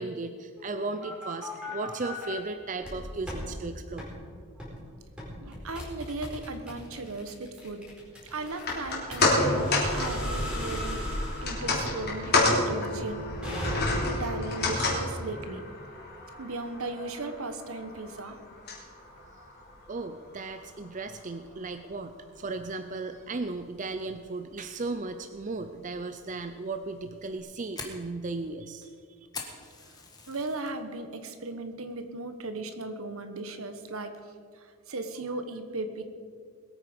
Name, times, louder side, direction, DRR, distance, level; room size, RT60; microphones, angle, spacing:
voice 1, 0.0-4.1 19.3-19.4 19.9-28.9, right 3 dB, 35° right, 9 dB, 0.5 m, -36 dB
sound 1, 0.6-2.3 2.8-3.5 4.0-4.1 4.6-4.8 5.2-14.2, left 1 dB, 5° right, 4.4 m, -36 dB
voice 2, 5.4-7.9 8.3-11.1 11.4-13.3 14.0-15.6 16.4-18.4 30.3-34.2 34.5-36.0, right 2 dB, 70° right, 8 dB, 1.3 m, -37 dB
sound 2, 8.5-20.9 21.2-21.3, left 2 dB, 45° left, 3.3 m, -30 dB
Fire, 27.2-30.7 31.1-31.5 31.9-32.0 32.6-32.9, left 4 dB, 15° left, 1.6 m, -43 dB
21.0 x 9.0 x 5.3 m, 2.2 s
head